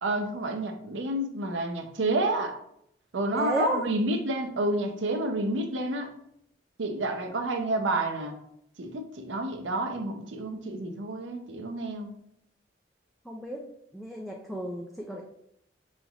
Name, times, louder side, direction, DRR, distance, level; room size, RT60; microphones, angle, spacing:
voice 1, 0.0-2.6 3.1-6.1 6.8-8.4 8.8-12.2, right 2 dB, 85° right, 4 dB, 0.6 m, -29 dB
voice 2, 3.3-3.8 13.2-13.6 13.9-15.2, equal, ahead, -2 dB, 0.3 m, -32 dB
5.1 x 3.2 x 2.4 m, 0.73 s
head